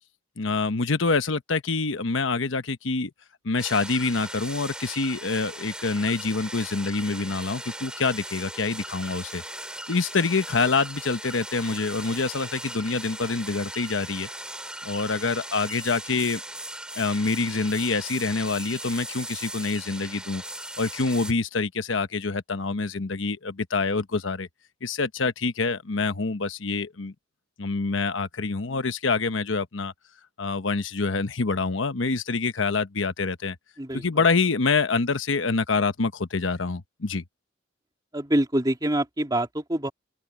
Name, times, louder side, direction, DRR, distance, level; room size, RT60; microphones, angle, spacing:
voice 1, 0.4-3.1 3.4-9.4 9.9-14.3 14.8-16.4 16.9-20.4 20.8-24.5 24.8-27.1 27.6-29.9 30.4-33.6 33.9-37.2, left 4 dB, 80° left, 1.0 m, -26 dB
sound 1, 3.6-21.3, right 1 dB, 5° right, 3.0 m, -38 dB
voice 2, 38.1-39.9, right 1 dB, 20° right, 2.9 m, -25 dB
open air
head